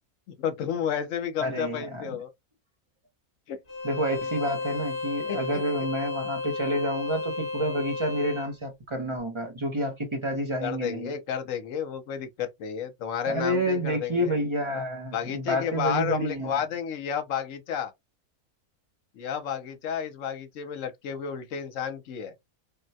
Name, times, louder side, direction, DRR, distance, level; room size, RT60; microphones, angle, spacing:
voice 1, 0.4-2.3 3.5-3.6 5.3-5.4 10.6-14.3 15.1-17.9 19.1-22.3, left 8 dB, 65° left, 1.0 m, -31 dB
voice 2, 1.4-2.1 3.8-11.1 13.3-16.6, equal, 35° right, 0.4 m, -29 dB
Bowed string instrument, 3.7-8.5, left 3 dB, 40° left, 1.1 m, -33 dB
3.6 x 2.2 x 2.7 m
omnidirectional pair, 1.6 m